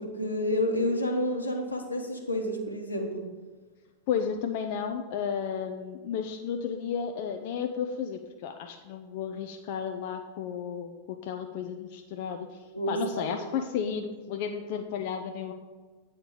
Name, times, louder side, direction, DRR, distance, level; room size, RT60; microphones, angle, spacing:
voice 1, 0.0-3.2 12.7-13.4 13.8-13.9, left 1 dB, 85° left, 1 dB, 1.2 m, -30 dB
voice 2, 4.1-12.5 12.9-15.5, left 7 dB, 50° left, 5 dB, 0.5 m, -33 dB
8.9 x 4.4 x 6.7 m, 1.4 s
figure-of-eight pair, 90°, 0 cm